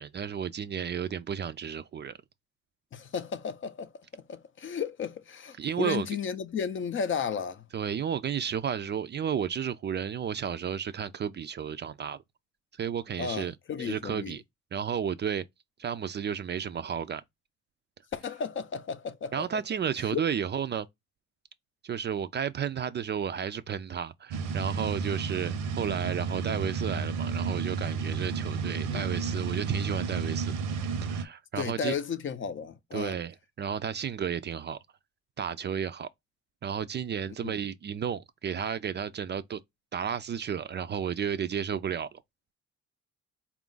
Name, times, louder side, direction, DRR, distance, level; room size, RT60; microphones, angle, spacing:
voice 1, 0.0-2.2 5.6-6.1 7.7-12.2 12.8-13.5 13.8-14.4 14.7-15.4 15.8-17.2 19.3-20.9 21.8-30.5 31.1-31.9 32.9-34.8 35.4-36.1 36.6-39.6 39.9-42.2, right 8 dB, 35° right, 0.4 m, -32 dB
voice 2, 2.9-7.7 13.2-14.4 18.1-19.5 20.1-20.2 28.9-29.1 31.6-33.2 37.4-37.6, left 6 dB, 40° left, 0.5 m, -34 dB
sound 1, 24.3-31.2, right 5 dB, 80° right, 0.8 m, -32 dB
4.2 x 2.4 x 3.8 m
cardioid pair, 90°, 30 cm